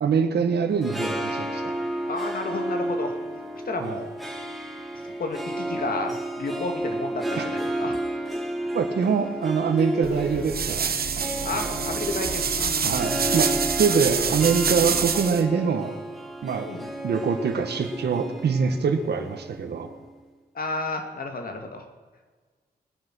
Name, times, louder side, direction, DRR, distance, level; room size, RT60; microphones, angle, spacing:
voice 1, 0.0-1.7 3.8-4.0 7.4-7.5 8.7-11.8 12.8-16.0 16.4-16.7 17.0-19.9, right 5 dB, 85° right, 7 dB, 1.5 m, -25 dB
Harp, 0.7-20.1, right 1 dB, ahead, 2.4 m, -32 dB
voice 2, 2.1-3.2 3.7-4.1 4.9-8.4 11.4-13.0 14.2-14.3 16.6-16.9 20.5-21.8, left 3 dB, 60° left, 4 dB, 2.4 m, -32 dB
sound 1, 10.0-15.4, right 6 dB, 65° right, 1.1 m, -27 dB
19.5 x 10.5 x 6.3 m, 1.4 s
wide cardioid pair, 90°, 17 cm